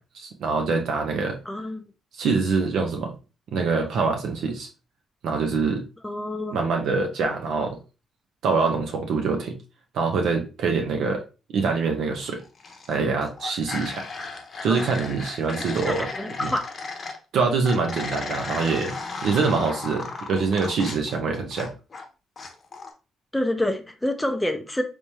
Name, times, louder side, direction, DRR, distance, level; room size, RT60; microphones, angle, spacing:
voice 1, 0.1-1.4 2.1-3.1 3.5-4.7 5.2-5.8 6.5-7.8 8.4-9.5 9.9-11.2 11.5-12.4 12.9-14.0 14.6-16.1 16.4-16.5 17.3-18.9 19.2-21.7, right 4 dB, 75° right, 0.6 m, -24 dB
voice 2, 1.5-1.9 6.0-6.6 14.7-14.8 15.8-16.7 23.3-24.8, left 1 dB, 5° left, 0.4 m, -27 dB
sound 1, 12.4-13.0 13.2-17.2 17.6-22.0 22.4-22.9, left 3 dB, 40° left, 0.8 m, -35 dB
3.5 x 3.0 x 2.7 m
cardioid pair, 90°, 0 cm